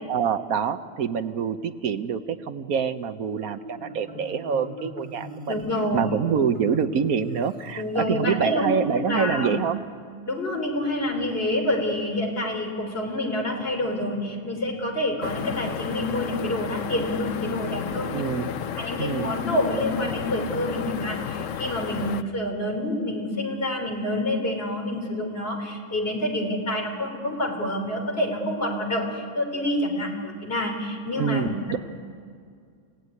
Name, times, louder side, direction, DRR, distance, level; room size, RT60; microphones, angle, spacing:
voice 1, 0.1-5.6 5.9-9.8 18.1-18.5 19.0-19.3 31.2-31.8, right 7 dB, 60° right, 10 dB, 1.1 m, -26 dB
Marimba xylophone, 3.4-8.5, right 1 dB, 25° right, 3.1 m, -41 dB
voice 2, 5.5-6.1 7.7-8.7 9.0-9.5 10.3-18.1 18.7-31.8, left 1 dB, 30° left, 3 dB, 4.0 m, -27 dB
sound 1, 15.2-22.2, left 8 dB, 60° left, 0.8 m, -32 dB
29.5 x 16.5 x 9.7 m, 2.1 s
omnidirectional pair, 2.2 m